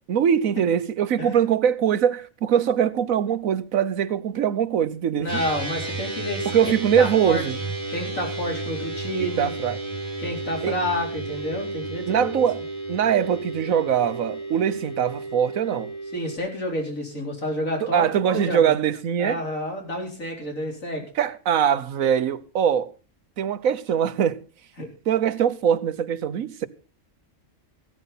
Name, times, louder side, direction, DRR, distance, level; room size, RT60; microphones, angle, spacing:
voice 1, 0.1-5.4 6.5-7.6 9.4-9.8 10.6-10.7 12.1-12.6 12.9-15.9 17.8-19.4 21.2-22.9 23.4-24.4 25.1-26.7, right 8 dB, 80° right, 1.3 m, -22 dB
voice 2, 5.2-6.5 7.0-7.4 7.9-9.5 10.2-12.4 16.1-18.7 19.2-21.1 24.8-24.9, equal, 75° left, 4.3 m, -29 dB
sound 1, 5.3-16.4, right 2 dB, 20° left, 7.1 m, -32 dB
15.0 x 13.0 x 4.1 m
omnidirectional pair, 1.4 m